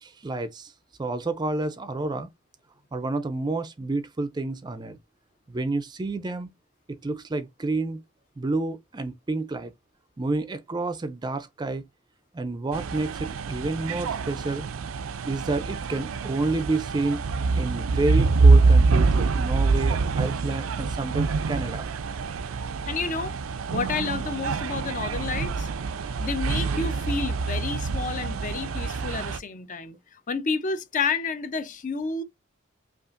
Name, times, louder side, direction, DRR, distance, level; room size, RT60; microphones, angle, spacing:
voice 1, 0.0-0.7 1.0-2.3 2.9-5.0 5.5-6.5 7.0-8.0 8.4-9.7 10.2-11.8 12.3-14.7 15.3-17.2 17.6-21.8, right 2 dB, 20° right, 0.4 m, -29 dB
sound 1, 12.7-29.4, right 4 dB, 85° right, 0.4 m, -25 dB
voice 2, 22.9-23.3 23.7-25.7 26.2-32.2, left 4 dB, 40° left, 0.5 m, -30 dB
5.3 x 2.4 x 2.5 m
head